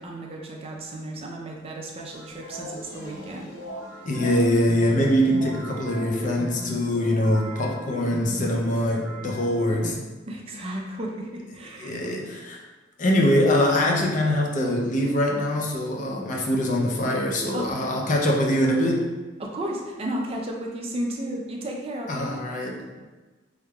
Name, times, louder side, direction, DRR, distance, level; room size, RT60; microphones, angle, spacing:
voice 1, 0.0-3.5 10.3-12.1 17.5-18.0 19.4-22.4, right 1 dB, 30° right, -1 dB, 0.4 m, -33 dB
sound 1, 2.1-10.0, right 1 dB, 70° left, 0.9 m, -38 dB
voice 2, 4.0-10.0 11.8-12.6 13.0-19.1 22.1-23.0, left 1 dB, 40° left, 0 dB, 0.4 m, -23 dB
3.5 x 3.3 x 2.2 m, 1.3 s
head